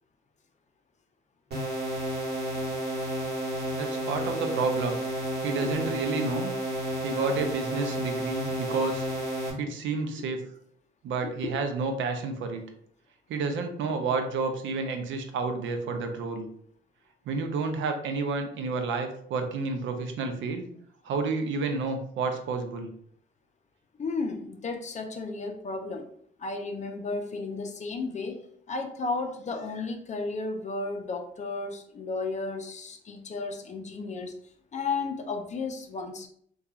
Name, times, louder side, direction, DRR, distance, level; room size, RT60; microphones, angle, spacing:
sound 1, 1.5-9.5, right 1 dB, 55° right, 1.1 m, -31 dB
voice 1, 3.7-5.0 5.4-6.5 7.0-9.1 9.6-10.4 11.0-12.6 13.3-16.5 17.3-20.7 21.0-22.9, right 4 dB, 75° right, 5 dB, 0.5 m, -30 dB
voice 2, 11.2-11.6 24.0-26.0 26.4-34.3 34.7-36.3, left 3 dB, 35° left, 5 dB, 0.5 m, -34 dB
2.9 x 2.3 x 2.4 m, 0.64 s
cardioid pair, 90°, 20 cm